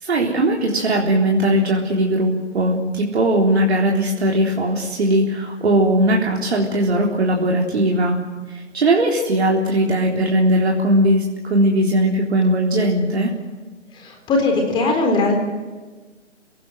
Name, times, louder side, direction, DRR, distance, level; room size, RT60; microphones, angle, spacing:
voice 1, 0.0-8.2 8.5-13.3, right 1 dB, 60° right, -1 dB, 3.8 m, -19 dB
voice 2, 14.0-15.3, left 3 dB, 15° left, 3 dB, 4.0 m, -19 dB
29.0 x 18.5 x 7.9 m, 1.3 s
figure-of-eight pair, 135°, 37 cm